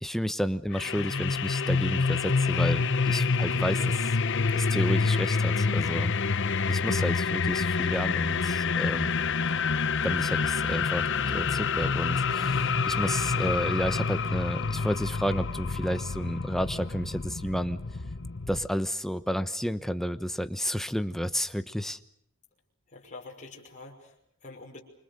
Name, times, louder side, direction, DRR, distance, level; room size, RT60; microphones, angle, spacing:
voice 1, 0.0-4.1 4.5-6.1 6.7-9.1 10.0-17.8 18.5-22.0, equal, ahead, 11 dB, 1.1 m, -31 dB
sound 1, 0.7-18.7, left 4 dB, 60° left, 1.1 m, -27 dB
voice 2, 22.9-24.8, left 3 dB, 35° left, -1 dB, 5.6 m, -46 dB
28.5 x 25.5 x 6.7 m, 0.71 s
head